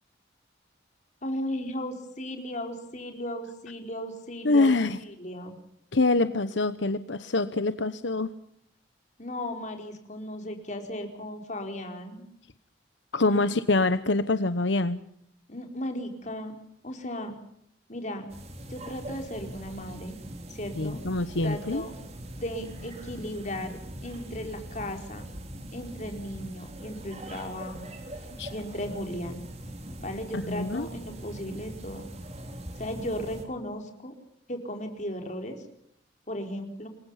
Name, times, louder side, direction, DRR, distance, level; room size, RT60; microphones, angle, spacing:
voice 1, 1.2-5.6 9.2-12.2 13.2-13.5 15.5-16.6 16.8-17.3 17.9-18.3 18.7-20.2 20.5-21.0 21.4-21.9 22.4-25.2 25.7-27.9 28.5-29.4 30.0-32.0 32.8-34.1 34.5-35.6 36.3-36.9, left 1 dB, 40° left, 4 dB, 4.7 m, -36 dB
voice 2, 4.4-5.0 5.9-8.3 13.1-15.0 20.8-21.8 28.4-28.5 30.3-30.9, left 2 dB, 75° left, 12 dB, 1.0 m, -25 dB
sound 1, 18.3-33.4, right 1 dB, 35° right, 4.0 m, -42 dB
28.0 x 22.0 x 5.8 m, 0.72 s
head